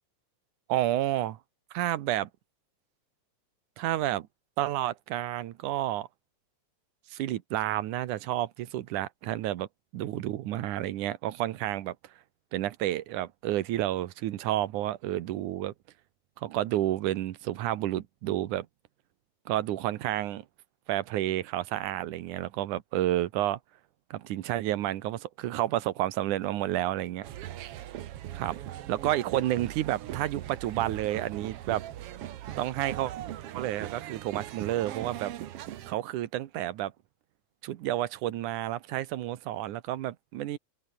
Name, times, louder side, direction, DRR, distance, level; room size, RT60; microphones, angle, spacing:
voice 1, 0.7-1.3 1.7-2.3 3.8-4.3 4.6-6.1 7.1-9.7 9.9-12.0 12.5-15.7 16.4-18.7 19.5-20.4 20.9-23.6 24.1-27.3 28.3-31.8 32.6-33.1 33.5-35.3 35.9-36.9 37.6-40.6, right 14 dB, 85° right, 2.6 m, -30 dB
sound 1, 27.2-36.0, right 12 dB, 65° right, 1.7 m, -40 dB
open air
omnidirectional pair, 3.4 m